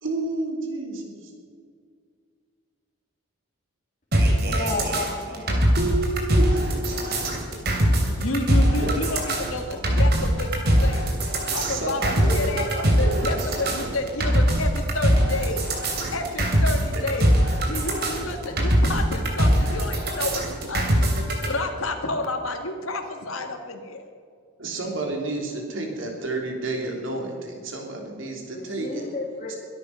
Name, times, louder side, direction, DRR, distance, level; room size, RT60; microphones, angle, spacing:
voice 1, 0.0-1.3 5.8-7.4 8.8-9.0 11.6-13.8 24.6-29.0 29.5-29.6, right 2 dB, 70° right, 2 dB, 3.2 m, -30 dB
sound 1, 4.1-21.5, right 1 dB, 50° right, 3.0 m, -22 dB
voice 2, 4.4-5.5 28.5-29.5, left 2 dB, 35° left, -2 dB, 2.1 m, -31 dB
voice 3, 8.2-11.1 11.5-12.7 13.0-15.7 16.1-17.3 17.7-21.1 21.4-24.0, left 2 dB, 85° left, 4 dB, 1.9 m, -30 dB
22.5 x 9.6 x 5.8 m, 2.1 s
head